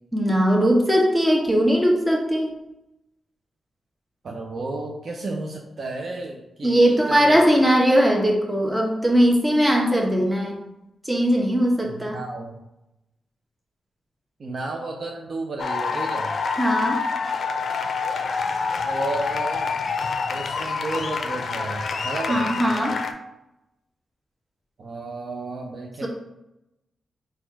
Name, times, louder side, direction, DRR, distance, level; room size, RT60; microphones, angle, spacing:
voice 1, 0.1-2.5 6.6-10.6 11.0-12.2 16.6-17.0 22.3-23.0 26.0-26.1, equal, 10° right, -1 dB, 0.9 m, -19 dB
voice 2, 4.2-7.4 11.8-12.6 14.4-16.4 18.8-19.7 20.3-22.4 24.8-26.1, right 2 dB, 60° right, 0 dB, 0.5 m, -32 dB
sound 1, 15.6-23.1, left 5 dB, 65° left, 0.4 m, -27 dB
4.3 x 2.3 x 4.5 m, 0.90 s
cardioid pair, 60°, 0 cm